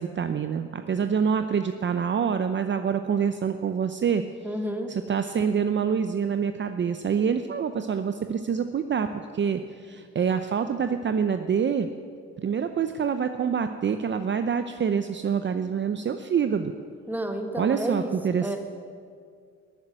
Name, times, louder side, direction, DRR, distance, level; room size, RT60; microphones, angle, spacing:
voice 1, 0.0-4.2 4.9-11.9 12.4-16.7 17.6-18.6, right 7 dB, 40° right, 9 dB, 0.7 m, -26 dB
voice 2, 4.4-4.9 17.1-18.6, right 1 dB, 5° right, 5 dB, 1.7 m, -31 dB
13.0 x 9.0 x 9.8 m, 2.2 s
cardioid pair, 90°, 30 cm